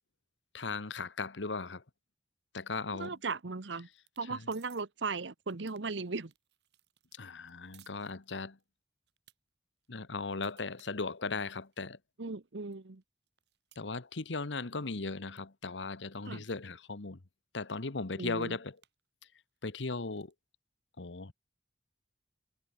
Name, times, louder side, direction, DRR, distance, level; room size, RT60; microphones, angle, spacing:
voice 1, 0.5-1.8 2.5-3.2 4.3-4.4 7.1-8.6 9.9-12.0 13.8-17.2 17.5-18.8 19.6-20.3 21.0-21.3, left 3 dB, 90° left, 1.2 m, -37 dB
sound 1, 3.0-3.6 3.9-4.3 4.5-4.8 5.3-8.6 9.1-9.4 9.8-11.9 12.3-12.4 12.7-14.5 14.7-15.0 15.4-15.5 15.7-15.8 16.1-16.7 17.3-17.4 17.7-19.1 19.3-20.3, right 12 dB, 70° right, 3.8 m, -65 dB
voice 2, 3.0-3.9 4.2-6.3 12.2-13.0 16.3-16.4 18.2-18.6, right 4 dB, 85° right, 1.0 m, -37 dB
head